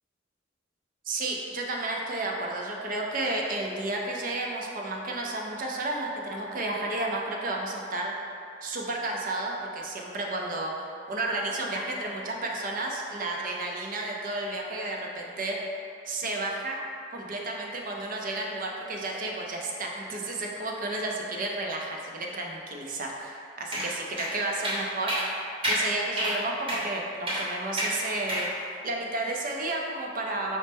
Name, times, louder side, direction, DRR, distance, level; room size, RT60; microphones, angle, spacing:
voice 1, 1.1-8.1 8.6-15.8 16.1-16.8 17.1-25.2 25.7-30.6, right 2 dB, 45° right, -1 dB, 0.5 m, -32 dB
sound 1, 23.7-23.9 24.2-24.3 24.6-24.8 25.1-25.3 25.6-25.8 26.2-26.3 26.7-26.8 27.3-27.4 27.8-27.9 28.3-28.5, right 1 dB, 30° right, 0.9 m, -28 dB
5.2 x 2.0 x 3.4 m, 2.6 s
head